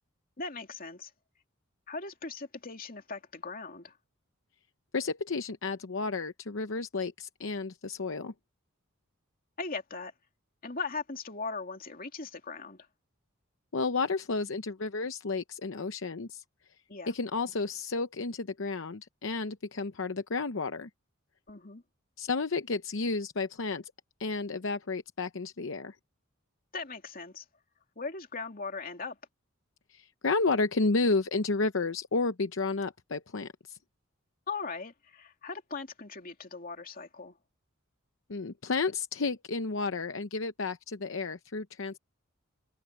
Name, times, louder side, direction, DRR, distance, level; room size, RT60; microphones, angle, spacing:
voice 1, 0.4-1.1 1.9-4.0 9.6-10.1 10.6-12.8 16.9-17.1 21.5-21.8 26.7-27.4 28.0-29.2 34.5-37.4, left 4 dB, 45° left, 2.7 m, -39 dB
voice 2, 4.9-8.3 13.7-16.4 17.1-20.9 22.2-23.9 24.2-26.0 29.9-33.8 38.3-42.0, left 3 dB, 65° left, 0.8 m, -31 dB
head